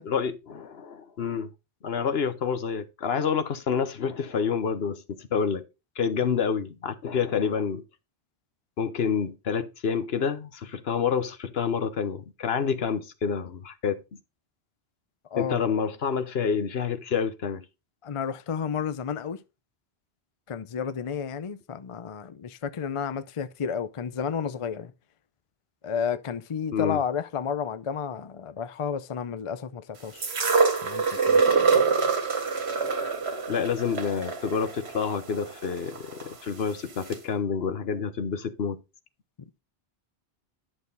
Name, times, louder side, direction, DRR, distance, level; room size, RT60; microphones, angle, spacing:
voice 1, 0.0-1.5 1.8-5.6 6.0-7.8 8.8-14.0 15.4-17.6 26.7-27.0 33.5-38.8, left 6 dB, 70° left, 1.2 m, -28 dB
voice 2, 18.0-19.4 20.5-24.9 25.8-30.3 30.8-31.9, left 7 dB, 40° left, 0.5 m, -32 dB
sound 1, 30.2-36.3 37.1-37.2, right 5 dB, 85° right, 1.7 m, -25 dB
11.0 x 6.3 x 3.9 m
omnidirectional pair, 1.1 m